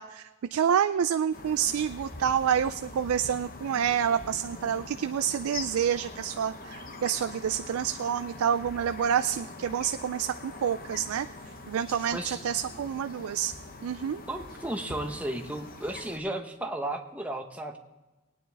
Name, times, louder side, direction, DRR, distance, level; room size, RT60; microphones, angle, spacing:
voice 1, 0.0-11.3 11.7-13.5 13.8-14.2, right 8 dB, 85° right, 10 dB, 0.4 m, -28 dB
sound 1, 1.3-16.2, left 2 dB, 40° left, 0.9 m, -43 dB
voice 2, 12.1-12.4 14.3-17.8, right 1 dB, 5° right, 3 dB, 0.9 m, -34 dB
19.5 x 9.4 x 3.4 m, 1.1 s
head